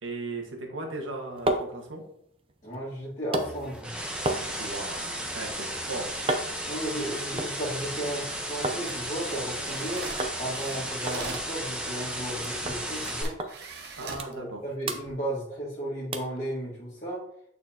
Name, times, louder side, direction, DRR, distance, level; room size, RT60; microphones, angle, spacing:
voice 1, 0.0-2.0 4.6-6.1 14.0-14.6, right 2 dB, 90° right, 1 dB, 1.4 m, -37 dB
sound 1, 0.9-8.8 9.2-9.8 10.2-10.4 10.7-10.8 11.1-12.4 12.7-12.8 13.4-13.5 13.9-14.6 14.8-15.7 16.1-16.4 16.9-17.0, right 2 dB, 30° right, 0.5 m, -34 dB
voice 2, 2.6-3.9 6.6-13.4 14.0-17.2, right 1 dB, 35° left, -8 dB, 1.6 m, -34 dB
sound 2, 3.4-13.2, right 1 dB, 5° right, 0.9 m, -34 dB
sound 3, 8.7-11.5 12.4-12.5 12.9-14.3 14.9-15.1, right 4 dB, 55° right, 1.0 m, -42 dB
8.9 x 4.2 x 2.8 m, 0.71 s
head